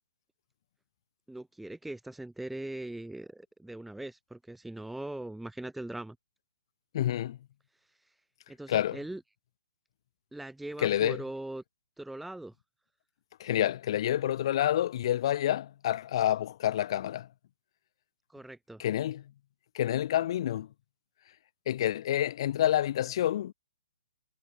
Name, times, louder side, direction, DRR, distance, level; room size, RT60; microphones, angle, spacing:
voice 1, 1.3-6.2 8.0-8.1 8.5-9.2 10.3-11.6 12.0-12.5 18.3-18.8, right 1 dB, ahead, 0.8 m, -41 dB
voice 2, 6.9-7.4 8.7-9.0 10.8-11.2 13.4-17.3 18.8-19.2 19.7-20.7 21.7-23.5, left 12 dB, 45° left, 0.9 m, -28 dB
figure-of-eight pair, 125°, 4 cm